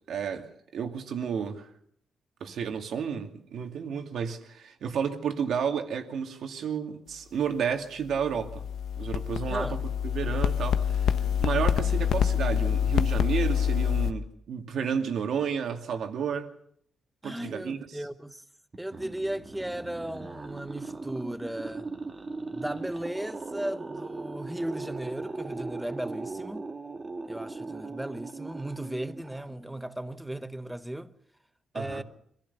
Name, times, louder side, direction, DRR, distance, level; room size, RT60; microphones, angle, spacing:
voice 1, 0.1-1.7 2.4-8.6 9.0-11.2 11.4-16.5 17.2-18.0 31.7-32.0, right 7 dB, 70° right, 2.4 m, -32 dB
sound 1, 8.1-14.1, left 8 dB, 80° left, 1.0 m, -26 dB
voice 2, 9.5-9.8 17.2-18.4 18.8-21.9 22.5-26.7 27.3-31.1 31.7-32.0, right 1 dB, 5° right, 0.9 m, -36 dB
sound 2, 18.7-29.9, right 3 dB, 25° right, 1.8 m, -39 dB
25.5 x 15.0 x 7.0 m
wide cardioid pair, 170°, 0 cm